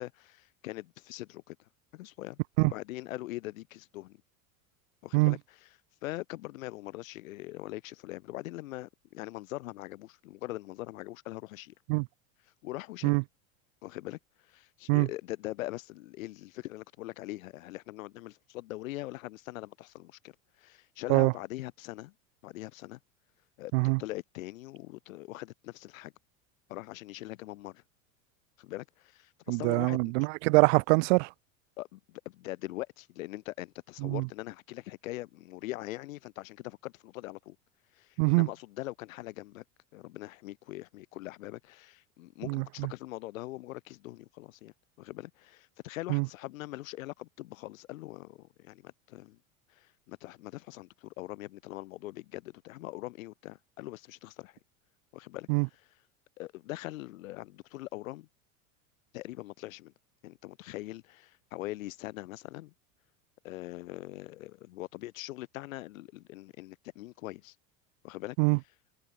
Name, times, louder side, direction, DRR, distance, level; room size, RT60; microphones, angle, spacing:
voice 1, 0.0-1.6 1.9-4.2 5.0-5.7 6.0-11.7 12.6-13.2 13.8-14.2 14.5-20.3 20.6-22.1 22.4-23.0 23.6-23.7 24.0-26.1 26.7-27.8 28.6-30.3 31.8-37.6 38.0-39.6 39.9-49.4 49.8-54.6 55.1-55.5 56.4-58.3 59.1-59.9 60.2-62.7 63.4-67.5 68.0-68.4, left 17 dB, 80° left, 1.5 m, -42 dB
voice 2, 29.5-31.3 34.0-34.3 38.2-38.5 42.5-42.9 46.1-46.3 55.5-55.7 68.4-68.6, right 30 dB, 65° right, 0.6 m, -24 dB
hypercardioid pair, 95°, 40 cm